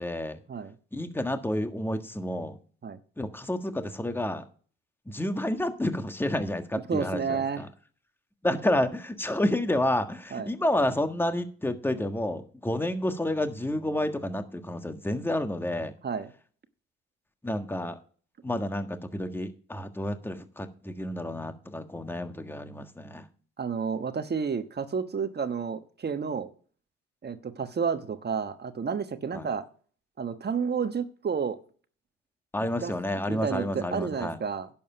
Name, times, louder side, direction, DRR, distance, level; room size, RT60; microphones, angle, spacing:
voice 1, 0.0-0.4 0.9-2.6 3.2-4.4 5.1-7.7 8.4-15.9 17.4-18.0 18.4-23.3 29.3-29.5 32.5-34.4, left 1 dB, 5° left, 8 dB, 1.5 m, -30 dB
voice 2, 6.9-7.6 10.3-10.5 16.0-16.3 23.6-26.5 27.2-29.6 30.2-31.6 32.8-32.9 33.3-34.7, right 6 dB, 35° right, 9 dB, 1.2 m, -31 dB
11.0 x 7.2 x 5.7 m, 0.42 s
supercardioid pair, 65°, 30 cm